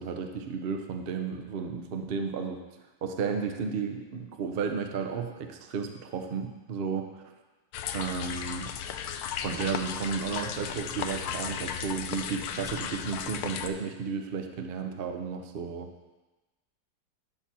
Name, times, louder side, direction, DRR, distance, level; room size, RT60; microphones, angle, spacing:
voice 1, 0.0-2.6 3.0-7.0 7.9-8.7 9.4-15.9, right 6 dB, 60° right, 5 dB, 0.6 m, -33 dB
sound 1, 7.7-13.7, left 8 dB, 70° left, 0.9 m, -35 dB
11.0 x 4.3 x 6.1 m, 1.1 s
omnidirectional pair, 2.0 m